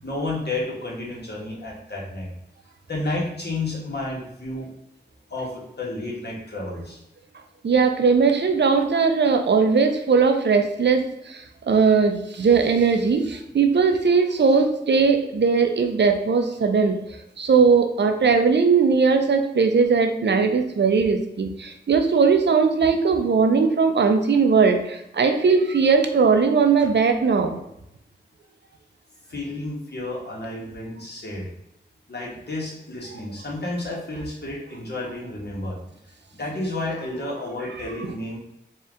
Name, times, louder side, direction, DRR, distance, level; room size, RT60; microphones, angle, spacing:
voice 1, 0.0-2.3 2.9-4.7 5.3-7.0 29.3-31.5 32.1-35.8 36.3-38.4, left 2 dB, 65° left, -3 dB, 1.3 m, -31 dB
voice 2, 7.6-27.6, right 5 dB, 75° right, 5 dB, 0.5 m, -19 dB
4.3 x 2.4 x 3.6 m, 0.84 s
wide cardioid pair, 50°, 18 cm